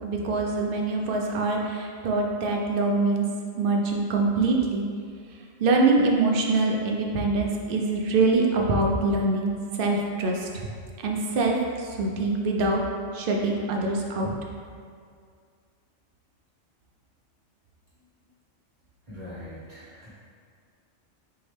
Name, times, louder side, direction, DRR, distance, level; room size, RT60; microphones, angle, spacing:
voice 1, 0.0-3.2 3.6-4.8 5.6-10.5 11.0-12.8 13.1-14.3, right 3 dB, 55° right, 0 dB, 0.7 m, -24 dB
voice 2, 19.1-20.1, left 1 dB, 35° right, -11 dB, 1.4 m, -42 dB
4.7 x 3.1 x 3.2 m, 2.2 s
omnidirectional pair, 1.3 m